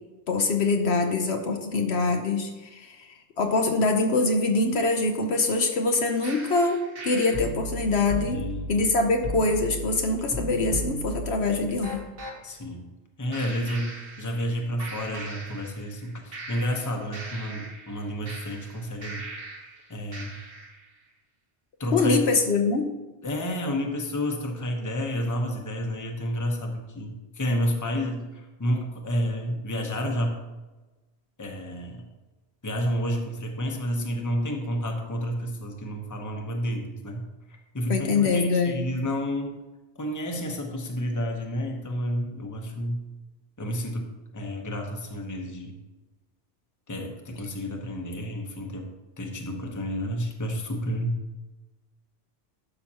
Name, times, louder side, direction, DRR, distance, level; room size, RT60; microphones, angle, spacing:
voice 1, 0.3-3.1 3.4-8.4 8.7-12.1 21.9-22.8 37.9-38.8, left 3 dB, 65° left, 4 dB, 1.0 m, -24 dB
sound 1, 6.2-12.4 13.3-14.5 14.8-16.0 16.3-19.7 20.1-20.8, right 2 dB, 55° right, 1.4 m, -37 dB
voice 2, 8.3-8.7 12.4-12.9 13.2-19.3 19.9-20.3 21.8-22.2 23.2-30.4 31.4-32.0 32.6-37.3 37.7-39.6 40.0-43.1 43.6-44.1 44.3-45.7 46.9-48.9 49.2-51.2, equal, 15° left, 2 dB, 0.9 m, -30 dB
11.5 x 5.8 x 2.9 m, 1.1 s
omnidirectional pair, 1.2 m